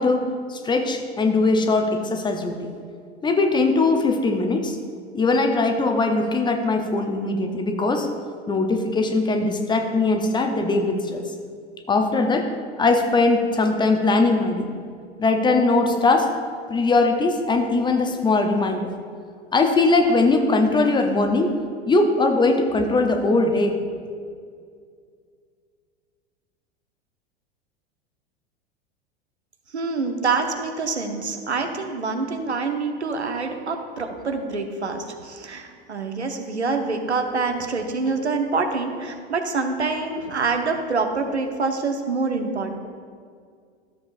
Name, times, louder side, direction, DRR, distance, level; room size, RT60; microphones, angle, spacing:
voice 1, 0.0-2.7 3.2-4.8 5.1-8.1 8.5-11.2 11.9-12.5 12.8-14.7 15.2-16.3 16.7-18.9 19.5-21.5 21.9-23.8, left 3 dB, 15° left, 5 dB, 0.7 m, -20 dB
voice 2, 29.7-42.8, right 4 dB, 80° right, 5 dB, 0.9 m, -26 dB
13.0 x 7.1 x 2.6 m, 2.1 s
figure-of-eight pair, 85°, 33 cm